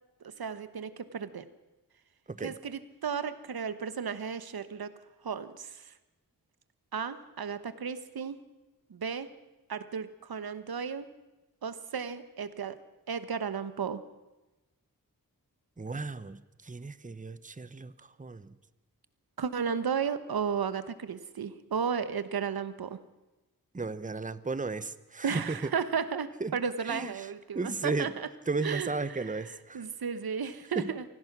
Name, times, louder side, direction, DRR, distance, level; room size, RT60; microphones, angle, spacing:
voice 1, 0.2-1.4 2.4-4.9 5.2-5.9 6.9-8.4 8.9-9.3 9.7-11.1 11.6-12.8 13.1-14.0 19.4-23.0 25.2-28.3 28.6-31.0, right 6 dB, 85° right, 13 dB, 1.2 m, -34 dB
voice 2, 15.8-17.9 18.2-18.5 23.7-25.6 26.4-26.6 26.9-27.3 27.5-28.1 28.5-29.8 30.7-30.9, right 3 dB, 20° right, 15 dB, 1.0 m, -34 dB
24.5 x 17.5 x 6.1 m, 1.1 s
cardioid pair, 55°, 36 cm